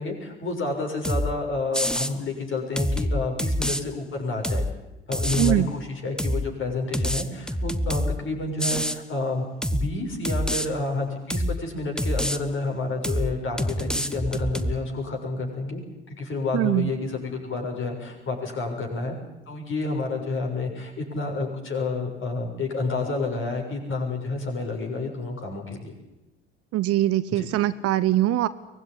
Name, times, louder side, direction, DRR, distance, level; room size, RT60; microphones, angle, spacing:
voice 1, 0.0-4.7 5.1-9.5 9.7-15.8 16.2-19.2 19.5-25.9 27.3-27.5, left 3 dB, 40° left, 2 dB, 7.0 m, -29 dB
sound 1, 1.0-1.3 1.7-2.1 2.8-3.8 4.4-4.7 5.1-5.6 6.2-6.5 6.9-8.2 8.6-9.0 9.6-9.9 10.2-10.7 11.3-11.6 12.0-12.4 13.0-13.3 13.6-14.7, equal, ahead, 1.3 m, -26 dB
voice 2, 5.4-5.7 16.5-16.9 26.7-28.5, right 14 dB, 50° right, 15 dB, 1.0 m, -22 dB
24.0 x 19.0 x 10.0 m, 0.95 s
figure-of-eight pair, 60°, 31 cm